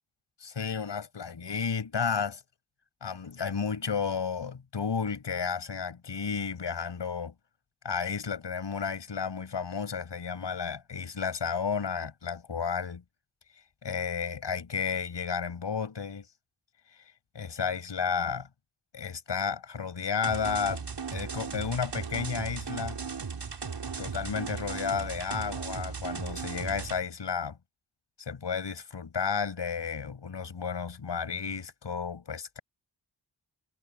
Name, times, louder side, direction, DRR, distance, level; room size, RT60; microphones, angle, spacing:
voice 1, 0.4-2.4 3.0-7.3 7.8-13.0 13.8-16.3 17.3-18.5 18.9-20.8 21.1-23.0 24.0-27.6 28.2-32.6, left 6 dB, 85° left, 7.7 m, -32 dB
sound 1, 20.2-27.0, right 5 dB, 75° right, 7.1 m, -37 dB
wide cardioid pair, 105°, 41 cm